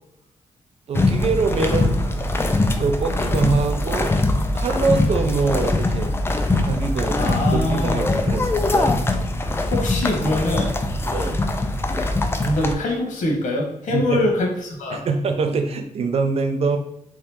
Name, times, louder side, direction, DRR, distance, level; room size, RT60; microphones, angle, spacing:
sound 1, 0.9-12.7, left 2 dB, 20° left, 0.4 m, -22 dB
voice 1, 0.9-2.2 2.5-4.2 4.5-6.1 6.6-9.0 11.1-11.5 13.9-14.3 14.9-16.8, right 4 dB, 55° right, 7 dB, 0.5 m, -24 dB
voice 2, 7.2-8.1 9.7-10.7 12.4-15.0, left 2 dB, 85° left, 1 dB, 1.1 m, -23 dB
3.5 x 2.9 x 3.4 m, 0.81 s
wide cardioid pair, 120°, 13 cm